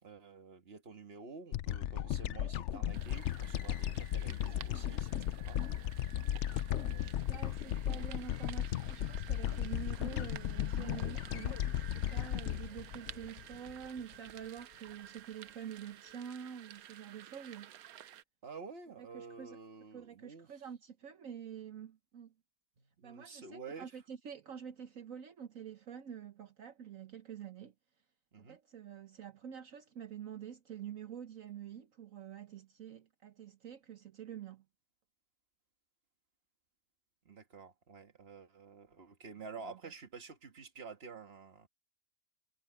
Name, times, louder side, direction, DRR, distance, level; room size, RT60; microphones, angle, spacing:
voice 1, 0.0-5.6 6.7-7.1 7.7-7.8 18.4-20.5 22.8-23.9 28.3-28.6 37.3-41.7, right 5 dB, 45° right, 1.8 m, -50 dB
sound 1, 1.5-14.0, left 11 dB, 65° left, 0.8 m, -36 dB
sound 2, 2.9-18.2, right 11 dB, 85° right, 1.2 m, -53 dB
voice 2, 6.8-17.7 19.0-19.6 19.9-22.3 23.0-27.7 28.4-34.6, right 8 dB, 65° right, 1.4 m, -47 dB
omnidirectional pair, 1.5 m